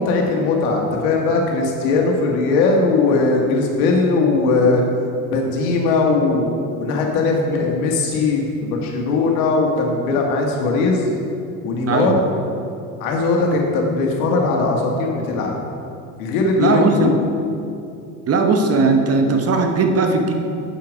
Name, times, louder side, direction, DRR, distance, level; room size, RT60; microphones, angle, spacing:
voice 1, 0.0-4.8 5.3-6.5 6.8-11.1 11.6-12.2 13.0-15.5 16.2-17.2, left 3 dB, 75° left, 0 dB, 1.8 m, -19 dB
voice 2, 11.9-12.2 16.6-17.1 18.3-20.3, right 4 dB, 35° right, 5 dB, 1.0 m, -17 dB
7.3 x 6.9 x 5.1 m, 2.5 s
hypercardioid pair, 90°, 44 cm